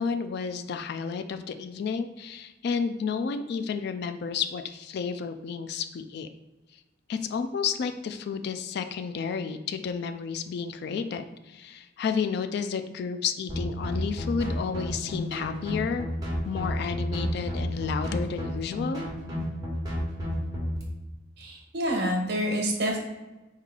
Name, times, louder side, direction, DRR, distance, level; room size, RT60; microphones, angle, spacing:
voice 1, 0.0-6.3 7.1-16.1 16.4-19.0, left 6 dB, 60° left, 9 dB, 0.3 m, -31 dB
sound 1, 13.5-20.8, equal, 20° right, 1.1 m, -31 dB
voice 2, 21.4-23.0, equal, 60° right, 0 dB, 1.1 m, -27 dB
4.3 x 3.2 x 3.7 m, 1.1 s
head